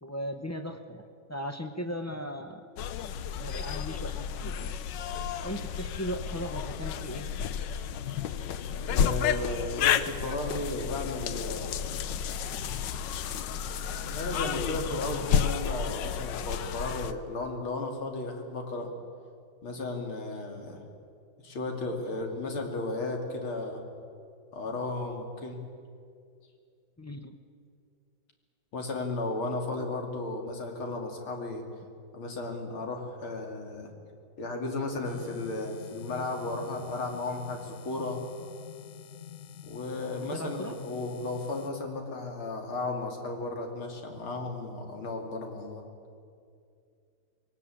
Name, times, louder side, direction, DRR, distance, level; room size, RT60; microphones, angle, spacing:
voice 1, 0.0-1.0 1.3-2.7 3.3-4.7 5.4-7.3 27.0-27.4 40.1-40.8, equal, 20° left, 7 dB, 0.4 m, -37 dB
sound 1, 2.8-17.1, left 8 dB, 65° left, 1.3 m, -31 dB
voice 2, 8.8-11.8 13.9-18.9 19.6-20.8 21.4-23.8 24.5-25.6 28.7-31.6 32.1-33.9 34.4-38.2 39.6-45.8, left 2 dB, 85° left, 2 dB, 3.5 m, -34 dB
sound 2, 35.0-41.7, left 9 dB, 50° left, 1.1 m, -47 dB
22.5 x 18.0 x 8.7 m, 2.3 s
omnidirectional pair, 2.2 m